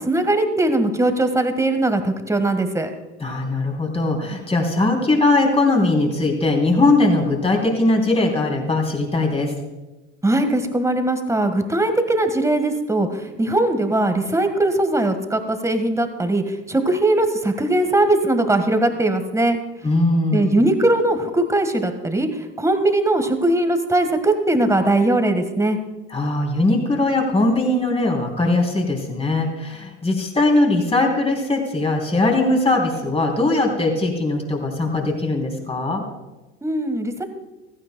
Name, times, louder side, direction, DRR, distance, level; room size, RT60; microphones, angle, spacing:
voice 1, 0.0-2.9 10.2-19.6 20.3-25.8 36.6-37.2, right 2 dB, 10° right, 7 dB, 1.6 m, -20 dB
voice 2, 3.2-9.5 19.8-20.5 26.1-36.0, left 2 dB, 20° left, 1 dB, 3.4 m, -20 dB
15.5 x 15.0 x 2.3 m, 1.1 s
hypercardioid pair, 70°, 33 cm